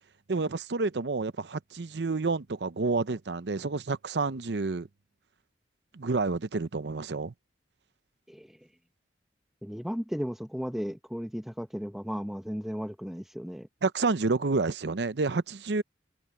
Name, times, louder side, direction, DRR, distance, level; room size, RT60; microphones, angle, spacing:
voice 1, 0.3-4.9 5.9-7.3 13.8-15.8, right 3 dB, 80° right, 0.7 m, -29 dB
voice 2, 8.3-8.6 9.6-13.7, equal, ahead, 0.9 m, -35 dB
head